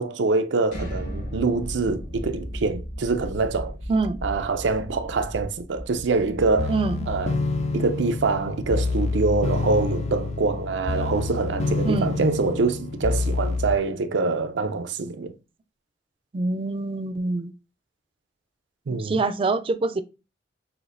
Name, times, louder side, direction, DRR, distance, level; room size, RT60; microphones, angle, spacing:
voice 1, 0.0-3.8 4.2-6.8 7.1-7.3 7.7-15.3 18.9-19.1, right 3 dB, 85° right, 0.5 m, -25 dB
sound 1, 0.7-12.5, equal, 75° left, 2.5 m, -37 dB
voice 2, 3.9-4.2 6.7-7.1 11.8-12.3 16.3-17.5 18.9-20.0, right 3 dB, 30° right, 0.4 m, -25 dB
sound 2, 6.6-13.8, left 3 dB, 40° left, 0.4 m, -27 dB
5.9 x 2.6 x 2.5 m
head